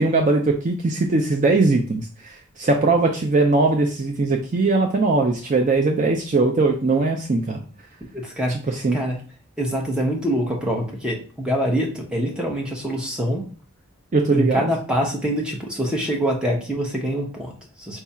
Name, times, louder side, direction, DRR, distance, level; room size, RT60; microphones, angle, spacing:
voice 1, 0.0-7.6 8.7-9.0 14.1-14.7, right 3 dB, 35° right, 2 dB, 0.4 m, -20 dB
voice 2, 8.1-9.2 9.6-13.5 14.3-18.0, equal, 5° right, -1 dB, 0.8 m, -25 dB
4.6 x 2.4 x 4.1 m, 0.40 s
head